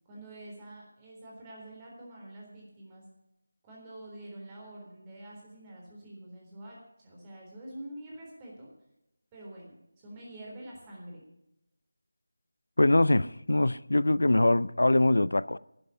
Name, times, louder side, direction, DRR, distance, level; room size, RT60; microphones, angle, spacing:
voice 1, 0.1-3.0 3.6-8.7 9.3-11.2, right 1 dB, 15° right, 3.8 m, -46 dB
voice 2, 12.8-15.6, left 2 dB, 85° left, 0.5 m, -23 dB
12.0 x 8.8 x 8.5 m
figure-of-eight pair, 170°, 0 cm